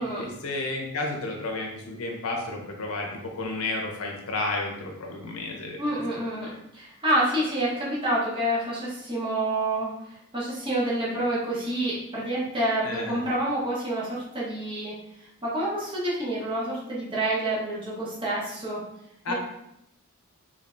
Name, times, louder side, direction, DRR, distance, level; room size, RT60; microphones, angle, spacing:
voice 1, 0.0-5.8 12.8-13.2 19.2-19.3, left 2 dB, 70° left, 1 dB, 0.7 m, -32 dB
voice 2, 5.8-18.8 19.3-19.4, right 1 dB, 25° right, -7 dB, 1.1 m, -28 dB
3.6 x 3.3 x 2.5 m, 0.82 s
head